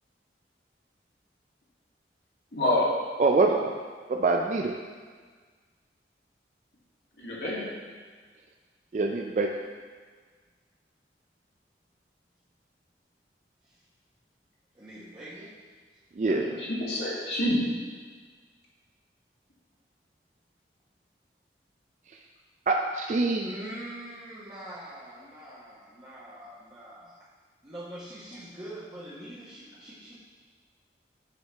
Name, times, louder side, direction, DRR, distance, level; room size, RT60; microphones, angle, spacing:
voice 1, 2.5-2.9 7.2-7.7 16.2-17.6, left 1 dB, 70° left, -7 dB, 2.1 m, -27 dB
voice 2, 3.2-3.7 4.1-4.8 8.9-9.5 16.2-16.5 22.7-23.5, right 3 dB, 40° right, 2 dB, 0.3 m, -24 dB
voice 3, 14.7-15.6 23.4-27.2 27.6-30.1, right 1 dB, 20° right, -10 dB, 0.9 m, -43 dB
8.5 x 4.6 x 3.4 m, 1.5 s
head